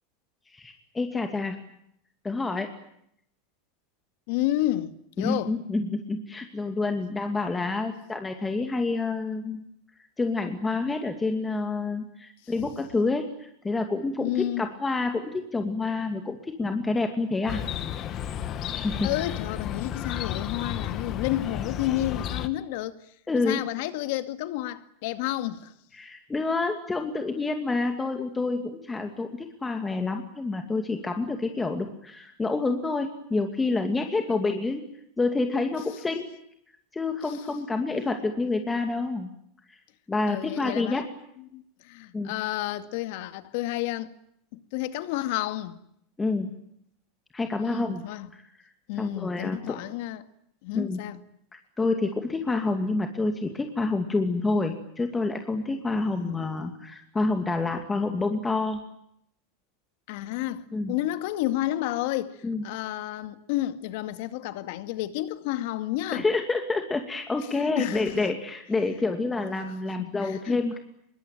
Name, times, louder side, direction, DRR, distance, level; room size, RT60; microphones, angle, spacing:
voice 1, 0.5-1.6 2.2-2.7 5.2-9.6 10.2-17.6 18.7-19.1 23.3-23.6 26.0-34.8 35.2-36.3 36.9-39.3 39.7-39.8 40.1-41.1 42.1-42.3 46.2-46.5 47.3-48.0 48.3-48.4 49.0-49.8 50.7-51.0 51.8-58.8 60.7-60.9 62.4-62.6 66.1-70.8, left 3 dB, 10° left, 2.5 m, -28 dB
voice 2, 4.3-5.5 12.4-12.7 14.2-14.7 19.0-23.0 23.3-25.7 34.3-34.4 37.2-37.5 40.3-41.0 41.4-44.1 44.5-45.8 47.6-48.3 48.9-50.3 50.6-51.2 56.0-56.4 60.1-66.3 67.6-68.3 69.6-69.7 70.0-70.8, left 14 dB, 60° left, 2.2 m, -31 dB
Chirp tweet, 17.5-22.5, left 9 dB, 35° left, 2.0 m, -33 dB
25.5 x 23.0 x 9.1 m
supercardioid pair, 150°, 0 cm